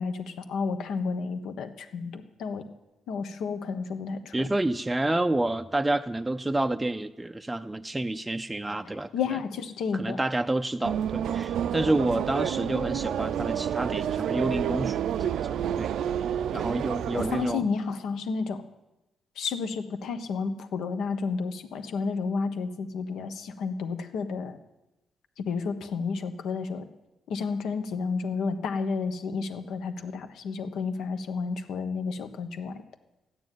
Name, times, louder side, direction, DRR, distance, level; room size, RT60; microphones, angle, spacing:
voice 1, 0.0-2.6 3.1-4.5 8.8-10.2 17.1-18.6 19.4-24.6 25.4-26.8 27.3-32.8, left 5 dB, 80° left, 7 dB, 1.3 m, -31 dB
voice 2, 4.3-9.1 9.9-14.9 15.2-15.3 15.8-15.9 16.5-17.6, right 2 dB, 10° right, 8 dB, 0.4 m, -28 dB
sound 1, 10.8-17.6, right 9 dB, 75° right, 0.5 m, -29 dB
13.0 x 9.6 x 9.2 m, 0.98 s
cardioid pair, 125°, 0 cm